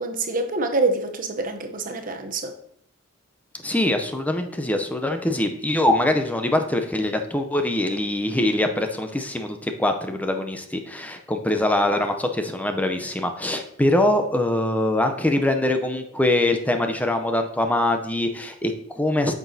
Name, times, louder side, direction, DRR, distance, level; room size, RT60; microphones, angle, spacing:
voice 1, 0.0-2.5, right 3 dB, 40° right, 0.7 m, -26 dB
voice 2, 3.6-19.3, left 1 dB, 5° left, 0.5 m, -23 dB
8.6 x 6.0 x 2.7 m
head